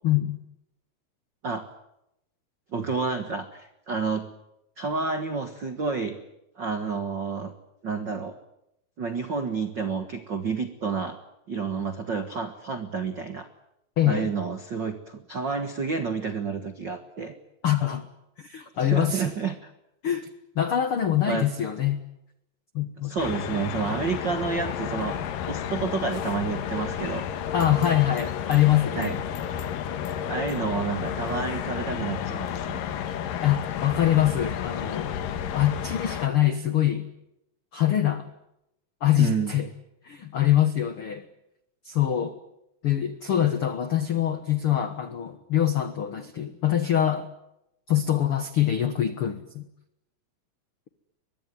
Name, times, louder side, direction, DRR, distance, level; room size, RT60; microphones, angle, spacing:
voice 1, 0.0-0.4 14.0-14.3 17.6-18.1 18.4-19.3 20.0-20.3 20.5-22.0 22.7-23.2 27.5-29.2 33.4-35.1 35.5-37.1 37.7-38.3 39.0-39.7 40.0-41.3 41.8-42.4 42.8-47.3 47.9-49.7, left 11 dB, 90° left, 10 dB, 1.2 m, -24 dB
voice 2, 2.7-4.3 4.8-6.2 6.6-7.5 7.8-8.4 9.0-11.2 11.5-13.5 14.0-17.3 18.8-19.7 21.3-21.5 23.0-27.2 28.9-29.1 30.3-32.9 39.2-39.5, right 5 dB, 80° right, 8 dB, 1.0 m, -30 dB
sound 1, 23.2-36.3, left 9 dB, 65° left, 2.9 m, -31 dB
23.5 x 21.5 x 9.5 m, 0.84 s
omnidirectional pair, 4.7 m